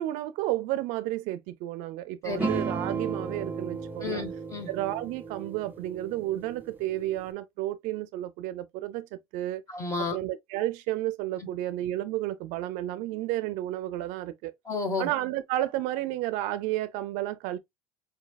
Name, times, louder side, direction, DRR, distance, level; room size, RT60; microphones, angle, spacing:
voice 1, 0.0-4.2 4.7-9.1 9.3-9.6 10.1-14.5 15.0-17.6, right 15 dB, 65° right, 0.5 m, -32 dB
voice 2, 2.2-2.6 4.0-4.7 9.7-10.2 14.6-15.1, left 4 dB, 20° left, 1.0 m, -32 dB
sound 1, 2.4-7.3, right 4 dB, 10° right, 0.5 m, -35 dB
5.0 x 2.7 x 2.2 m
cardioid pair, 160°, 14 cm